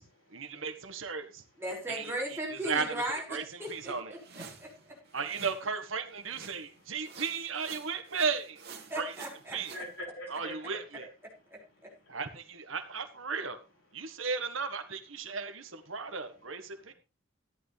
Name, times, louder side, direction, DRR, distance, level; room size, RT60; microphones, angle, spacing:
voice 1, 0.3-1.4 1.9-3.0 3.3-4.1 5.1-8.6 8.9-9.1 9.5-9.7 10.3-11.0 12.1-13.6 13.9-16.9, right 5 dB, 75° right, 1.5 m, -35 dB
voice 2, 1.6-5.0 8.9-9.6 11.5-11.9, right 1 dB, 10° right, 5.7 m, -37 dB
sound 1, 3.6-5.8 6.2-6.8 7.0-9.9, right 5 dB, 55° right, 2.4 m, -50 dB
voice 3, 4.5-5.2 6.5-7.0 8.8-8.9 9.7-11.1 11.8-12.2 14.0-14.3 15.2-15.4 15.9-16.1 16.7-16.9, equal, 75° left, 5.9 m, -47 dB
14.0 x 11.0 x 3.4 m
head